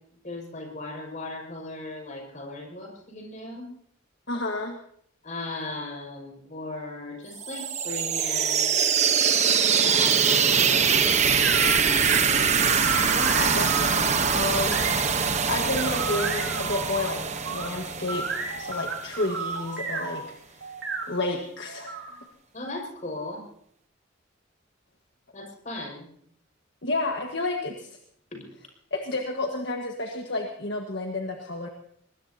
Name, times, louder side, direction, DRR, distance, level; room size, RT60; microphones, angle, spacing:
voice 1, 0.2-3.7 5.2-8.8 9.8-11.0 22.5-23.4 25.3-26.1 28.3-28.4, left 2 dB, 40° left, 1 dB, 5.7 m, -37 dB
voice 2, 4.3-4.8 13.1-17.2 17.5-20.7 21.1-22.1 26.8-27.9 28.9-31.7, left 2 dB, 60° left, 2 dB, 1.6 m, -31 dB
sound 1, 7.4-19.1, right 6 dB, 35° right, 1.0 m, -23 dB
sound 2, 11.4-15.4 15.8-17.7 18.1-20.2 20.6-22.1, right 4 dB, 70° right, 4.5 m, -33 dB
23.5 x 20.5 x 2.8 m, 0.66 s
head